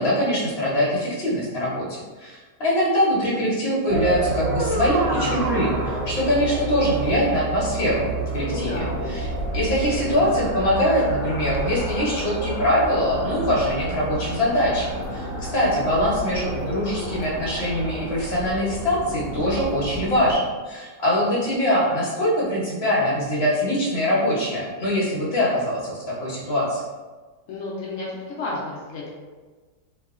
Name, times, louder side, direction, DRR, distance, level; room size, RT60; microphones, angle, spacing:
voice 1, 0.0-8.1 8.3-8.8 9.1-9.3 9.5-26.8, equal, 45° left, -6 dB, 0.9 m, -23 dB
sound 1, 3.9-20.3, right 2 dB, 75° right, 1.2 m, -29 dB
voice 2, 8.4-9.0 27.5-29.1, left 2 dB, 80° left, -5 dB, 0.7 m, -32 dB
sound 2, 9.2-18.8, left 1 dB, 30° left, 0.4 m, -38 dB
3.0 x 2.7 x 2.4 m, 1.3 s
omnidirectional pair, 2.0 m